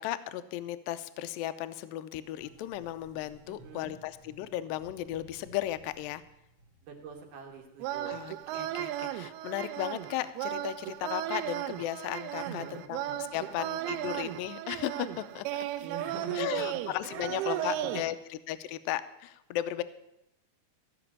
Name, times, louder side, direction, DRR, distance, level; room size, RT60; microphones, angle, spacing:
voice 1, 0.0-6.2 8.1-13.0 13.3-15.5 16.3-19.8, left 13 dB, 80° left, 13 dB, 2.2 m, -35 dB
sound 1, 2.2-9.7, right 2 dB, 45° right, 2.6 m, -58 dB
voice 2, 3.5-4.0 6.8-8.2 12.4-13.9 15.8-18.0, right 5 dB, 60° right, 3 dB, 2.7 m, -45 dB
sound 2, 7.8-18.0, right 13 dB, 85° right, 2.6 m, -35 dB
15.5 x 6.0 x 8.5 m, 0.86 s
omnidirectional pair, 4.5 m